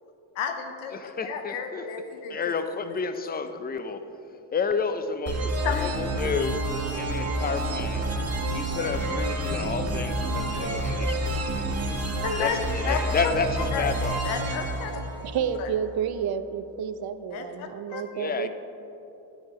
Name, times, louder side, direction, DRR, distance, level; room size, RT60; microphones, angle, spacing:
voice 1, 0.4-2.4 2.8-3.0 5.6-5.9 12.2-12.6 12.8-13.3 13.7-13.9 14.2-15.0 15.6-15.7 17.3-18.0, left 7 dB, 90° left, 5 dB, 0.8 m, -32 dB
voice 2, 0.9-1.8 2.3-4.0 4.5-6.6 7.0-8.1 8.5-11.4 12.4-14.2 18.1-18.5, left 5 dB, 20° left, 9 dB, 0.5 m, -30 dB
sound 1, 5.3-15.9, right 1 dB, 30° right, 1.4 m, -29 dB
voice 3, 15.2-18.5, right 8 dB, 50° right, 11 dB, 0.6 m, -30 dB
9.6 x 5.7 x 4.7 m, 3.0 s
cardioid pair, 90°, 47 cm